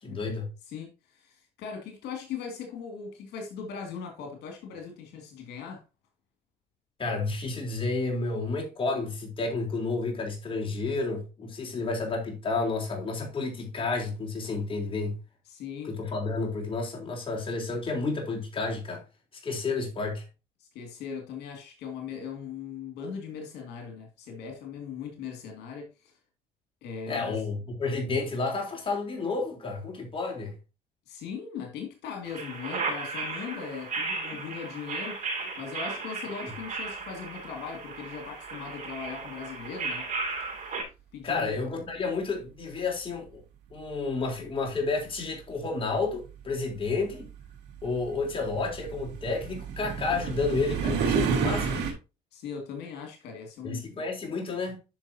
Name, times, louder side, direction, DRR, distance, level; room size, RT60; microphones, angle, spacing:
voice 1, 0.0-0.5 7.0-15.2 15.8-19.0 19.4-20.3 27.1-30.5 41.2-43.4 43.7-47.3 47.8-51.8 53.6-54.8, left 3 dB, 30° left, 3.8 m, -31 dB
voice 2, 0.7-5.8 15.5-15.9 20.6-26.1 26.8-27.4 31.1-40.1 41.1-41.5 52.3-54.0, left 6 dB, 80° left, 2.4 m, -39 dB
sound 1, 32.2-40.8, right 4 dB, 45° right, 5.3 m, -35 dB
sound 2, 44.7-44.8 45.8-51.9, right 6 dB, 80° right, 3.2 m, -31 dB
10.5 x 6.2 x 2.8 m
cardioid pair, 110°, 17 cm